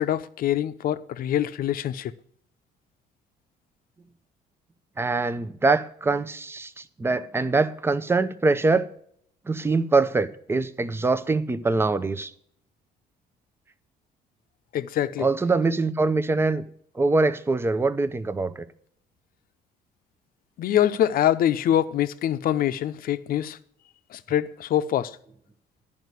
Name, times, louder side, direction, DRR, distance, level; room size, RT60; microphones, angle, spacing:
voice 1, 0.0-2.1 14.7-15.3 20.6-23.6 24.1-25.2, left 11 dB, 60° left, 0.7 m, -24 dB
voice 2, 5.0-8.9 9.5-12.3 15.2-16.6 16.9-18.7, right 3 dB, 15° right, 0.7 m, -23 dB
11.0 x 5.2 x 8.1 m
cardioid pair, 110°, 17 cm